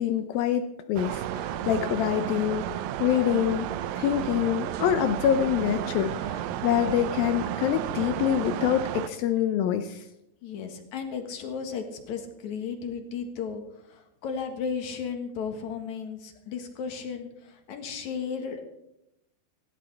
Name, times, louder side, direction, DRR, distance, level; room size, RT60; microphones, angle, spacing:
voice 1, 0.0-2.7 3.0-3.7 4.0-10.1, left 10 dB, 80° left, 9 dB, 2.1 m, -26 dB
sound 1, 1.0-9.1, right 11 dB, 80° right, 2.1 m, -32 dB
voice 2, 10.4-18.8, left 6 dB, 60° left, 5 dB, 2.2 m, -35 dB
17.0 x 16.5 x 3.4 m, 0.84 s
omnidirectional pair, 4.8 m